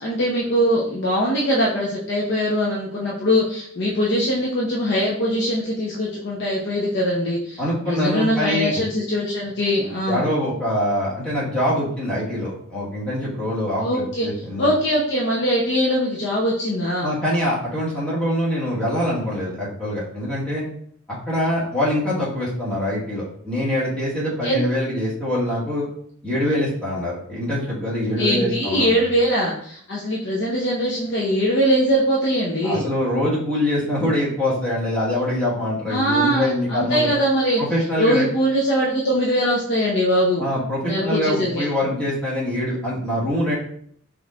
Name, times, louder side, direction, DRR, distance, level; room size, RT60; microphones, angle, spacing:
voice 1, 0.0-10.3 13.8-14.3 14.6-17.1 24.4-24.7 28.2-32.8 35.9-37.6 38.0-40.4 40.8-41.6, equal, 60° left, -4 dB, 0.7 m, -22 dB
voice 2, 7.6-8.7 10.1-14.7 17.0-20.7 21.1-25.9 26.2-29.0 32.6-37.1 37.6-38.2 40.4-43.5, left 1 dB, 5° left, -8 dB, 1.4 m, -24 dB
5.1 x 3.1 x 2.4 m, 0.64 s
head